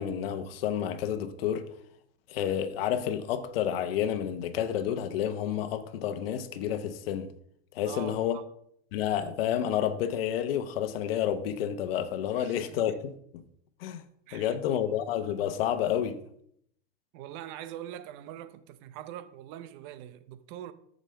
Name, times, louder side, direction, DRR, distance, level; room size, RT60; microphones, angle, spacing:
voice 1, 0.0-1.6 2.3-7.3 7.7-8.4 8.9-13.1 13.8-14.0 14.3-16.2, left 10 dB, 75° left, 1.0 m, -30 dB
voice 2, 7.8-8.4 12.3-12.8 14.3-14.8 17.1-20.7, right 11 dB, 50° right, 0.8 m, -43 dB
14.0 x 5.2 x 3.4 m
supercardioid pair, 140°, 30 cm